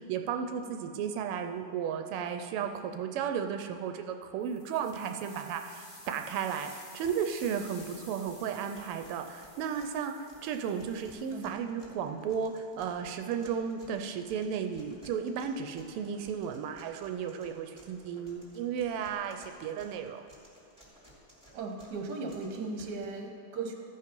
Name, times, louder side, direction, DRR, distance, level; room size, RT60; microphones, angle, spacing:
voice 1, 0.0-20.2, right 7 dB, 85° right, 6 dB, 1.5 m, -34 dB
sound 1, 4.4-11.5, left 1 dB, 40° left, 2.4 m, -53 dB
sound 2, 7.0-23.0, right 1 dB, 5° right, 2.4 m, -57 dB
voice 2, 21.5-23.8, right 3 dB, 55° right, 2 dB, 1.5 m, -37 dB
14.5 x 5.5 x 5.2 m, 2.6 s
omnidirectional pair, 2.4 m